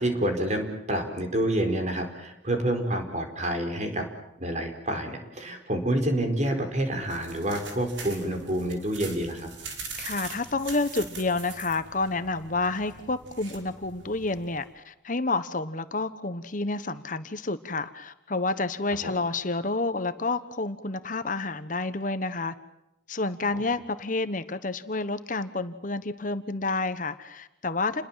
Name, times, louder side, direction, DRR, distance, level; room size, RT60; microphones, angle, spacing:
voice 1, 0.0-4.0 4.4-9.5 19.0-19.1, right 1 dB, 40° right, 5 dB, 4.6 m, -28 dB
sound 1, 6.8-14.7, right 4 dB, 80° right, 5.3 m, -43 dB
voice 2, 10.0-22.5 23.1-28.0, left 3 dB, 45° left, 11 dB, 1.2 m, -29 dB
29.5 x 21.5 x 7.6 m, 0.86 s
head